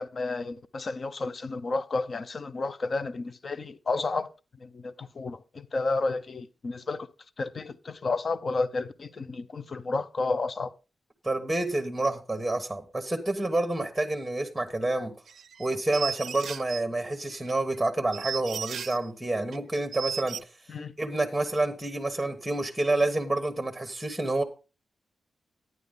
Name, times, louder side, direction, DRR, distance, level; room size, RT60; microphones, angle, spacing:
voice 1, 0.0-4.3 4.6-7.1 7.4-10.7 20.7-20.9, left 3 dB, 40° left, 0.6 m, -31 dB
voice 2, 11.2-15.1 15.6-20.4 21.0-24.4, right 2 dB, 5° right, 1.2 m, -28 dB
sound 1, 15.3-16.8 17.3-19.1 19.5-19.6 19.9-20.4, right 7 dB, 70° right, 0.5 m, -36 dB
11.0 x 9.6 x 3.7 m
wide cardioid pair, 165°, 0 cm